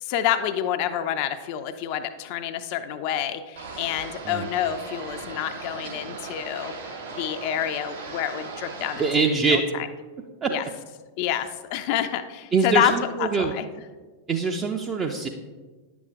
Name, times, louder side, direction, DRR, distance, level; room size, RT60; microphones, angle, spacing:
voice 1, 0.0-9.9 10.5-10.6 11.2-12.9 13.2-13.7, left 10 dB, 45° left, 9 dB, 0.4 m, -28 dB
sound 1, 3.6-9.1, right 4 dB, 65° right, 1.8 m, -38 dB
voice 2, 9.0-9.6 10.4-10.5 12.5-13.5 14.3-15.3, right 4 dB, 25° right, 2 dB, 0.5 m, -23 dB
9.5 x 6.9 x 2.4 m, 1.3 s
figure-of-eight pair, 90°, 0 cm